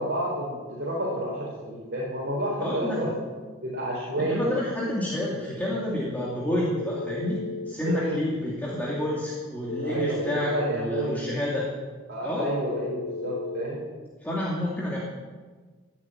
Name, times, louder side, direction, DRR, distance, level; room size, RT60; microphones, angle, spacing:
voice 1, 0.0-3.2 3.6-4.5 7.9-8.2 9.8-11.2 12.1-13.8, right 1 dB, 50° right, -5 dB, 4.3 m, -30 dB
voice 2, 2.6-3.0 4.2-7.4 7.7-11.6 12.2-12.5 14.2-15.0, left 1 dB, 10° left, -7 dB, 2.5 m, -29 dB
Telephone, 6.7-7.8 9.7-10.7 12.6-13.7, left 3 dB, 50° left, 0.4 m, -34 dB
16.0 x 8.2 x 8.9 m, 1.4 s
head